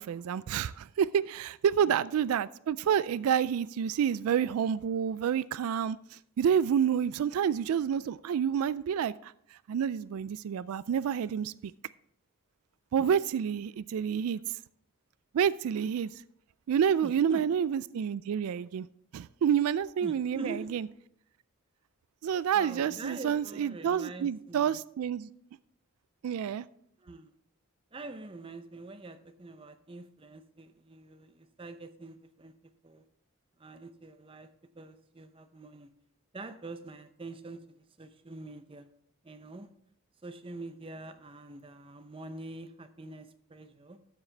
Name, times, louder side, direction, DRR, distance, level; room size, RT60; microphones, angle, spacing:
voice 1, 0.0-9.3 9.7-11.7 12.9-14.4 15.3-16.1 16.7-18.9 19.1-20.9 22.2-25.3 26.2-26.7, right 8 dB, 85° right, 0.3 m, -29 dB
voice 2, 17.0-17.5 20.0-20.7 22.5-24.8 27.0-27.3 27.9-32.5 32.8-33.0 33.6-34.5 34.8-35.9 36.3-38.9 39.2-39.7 40.2-44.0, right 2 dB, 25° right, 0.6 m, -45 dB
13.0 x 7.3 x 3.3 m
head